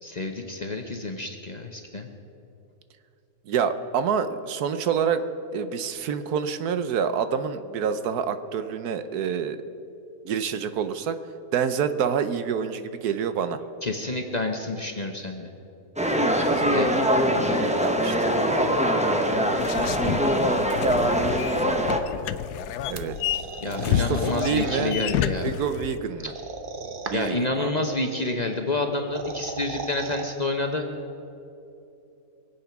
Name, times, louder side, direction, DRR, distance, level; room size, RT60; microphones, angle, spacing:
voice 1, 0.0-2.1 13.8-15.5 16.7-16.9 17.2-17.6 23.6-25.5 26.2-26.3 27.1-30.9, left 2 dB, 30° left, 4 dB, 0.9 m, -29 dB
voice 2, 3.5-5.2 5.5-9.6 10.2-11.2 11.5-13.6 16.5-16.9 17.8-18.6 22.9-23.2 23.8-25.0 25.4-26.3 27.1-27.7, right 7 dB, 80° right, 11 dB, 1.3 m, -27 dB
sound 1, 16.0-22.0, equal, 5° right, 0.7 m, -23 dB
sound 2, 19.6-26.0, left 10 dB, 90° left, 1.1 m, -29 dB
sound 3, 23.0-25.0 26.3-27.4 28.9-30.3, right 4 dB, 40° right, 0.9 m, -36 dB
23.5 x 8.4 x 5.9 m, 2.9 s
omnidirectional pair, 1.6 m